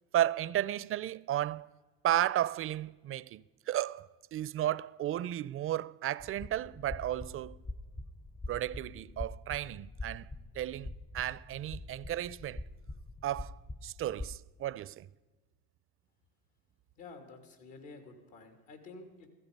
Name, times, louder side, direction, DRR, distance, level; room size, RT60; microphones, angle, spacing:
voice 1, 0.1-1.7 2.0-7.6 8.5-10.3 10.5-12.6 13.2-15.1, right 12 dB, 40° right, 0.5 m, -34 dB
sound 1, 6.2-14.3, left 2 dB, 15° left, 0.5 m, -44 dB
voice 2, 17.0-19.3, left 3 dB, 75° left, 3.0 m, -50 dB
16.0 x 15.0 x 5.3 m
supercardioid pair, 90°, 35 cm